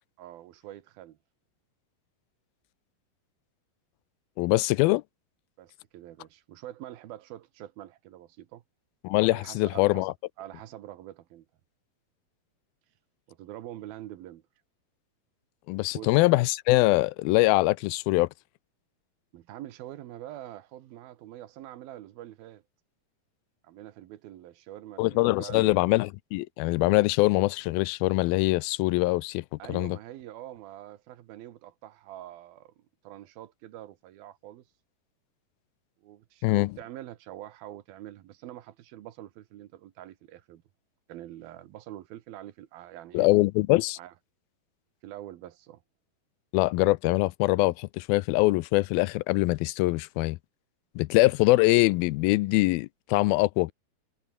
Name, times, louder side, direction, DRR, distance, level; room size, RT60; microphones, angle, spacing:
voice 1, 0.2-1.2 5.6-8.6 9.3-11.5 13.3-14.4 15.9-16.1 19.3-22.6 23.6-25.8 29.6-34.6 36.0-40.6 41.1-43.3 44.0-44.1 45.0-45.8, right 13 dB, 80° right, 3.1 m, -45 dB
voice 2, 4.4-5.0 9.0-10.1 15.7-18.3 25.0-30.0 36.4-36.7 43.1-44.0 46.5-50.4 51.0-53.7, left 21 dB, 80° left, 2.4 m, -23 dB
omnidirectional pair, 4.3 m